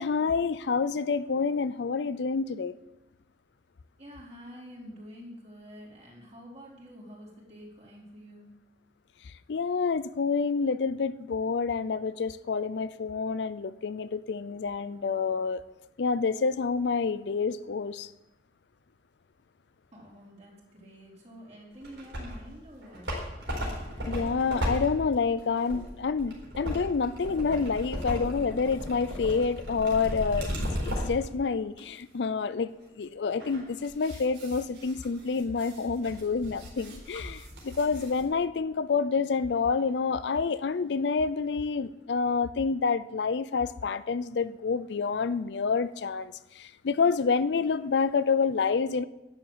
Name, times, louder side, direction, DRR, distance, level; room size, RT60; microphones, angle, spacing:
voice 1, 0.0-2.8 9.5-15.6 16.0-18.1 24.0-49.0, left 5 dB, 70° left, 0.5 m, -28 dB
voice 2, 4.0-8.5 19.9-23.1, equal, 40° right, 4.3 m, -48 dB
sound 1, 21.8-22.5 22.8-31.2 31.8-31.9 33.4-38.2, equal, 90° right, 4.2 m, -36 dB
11.5 x 7.3 x 7.9 m
head